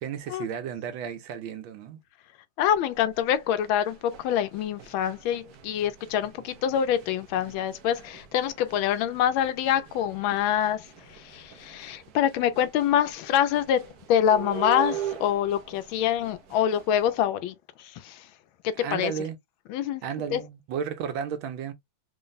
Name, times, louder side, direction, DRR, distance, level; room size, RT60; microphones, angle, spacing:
voice 1, 0.0-2.0 18.8-19.4 20.0-21.7, right 8 dB, 80° right, 1.6 m, -33 dB
voice 2, 2.6-18.3 18.6-19.1 19.7-20.4, left 10 dB, 80° left, 1.4 m, -26 dB
sound 1, 2.7-17.2, right 11 dB, 65° right, 1.0 m, -42 dB
3.8 x 2.1 x 3.9 m
omnidirectional pair, 2.2 m